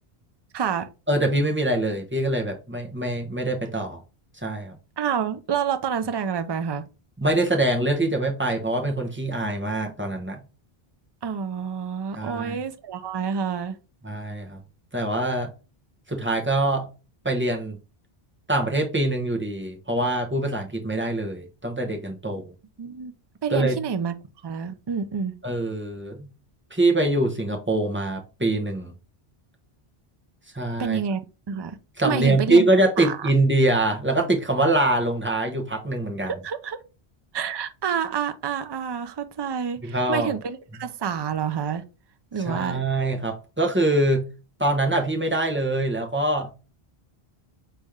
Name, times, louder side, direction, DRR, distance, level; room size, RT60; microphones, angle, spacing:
voice 1, 0.5-0.9 5.0-6.9 11.2-13.8 22.8-23.1 23.4-24.1 24.4-25.4 30.8-31.2 31.5-31.8 32.0-32.6 33.0-33.3 36.3-36.8 37.3-41.8 42.3-42.8, right 7 dB, 45° right, 0.3 m, -28 dB
voice 2, 1.1-4.0 4.4-4.8 7.2-10.4 12.1-12.6 14.0-14.6 14.9-15.5 16.1-16.9 17.2-17.8 18.5-22.5 23.5-23.8 25.4-26.3 26.7-28.9 30.5-31.0 32.0-36.3 39.8-40.3 42.5-44.3 44.6-46.5, right 2 dB, 10° right, 0.9 m, -24 dB
4.2 x 3.4 x 3.5 m
omnidirectional pair, 1.1 m